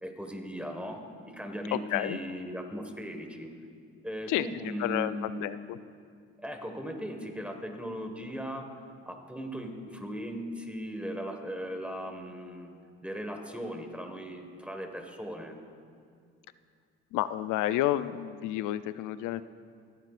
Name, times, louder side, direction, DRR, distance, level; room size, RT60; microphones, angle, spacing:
voice 1, 0.0-3.5 4.0-5.4 6.4-8.7 9.0-12.8 13.0-15.6, equal, 5° right, 4 dB, 1.5 m, -38 dB
voice 2, 1.7-2.2 4.3-4.5 4.8-5.8 17.1-19.4, left 14 dB, 85° left, 14 dB, 0.5 m, -30 dB
27.0 x 9.0 x 2.5 m, 2.2 s
supercardioid pair, 80°, 30 cm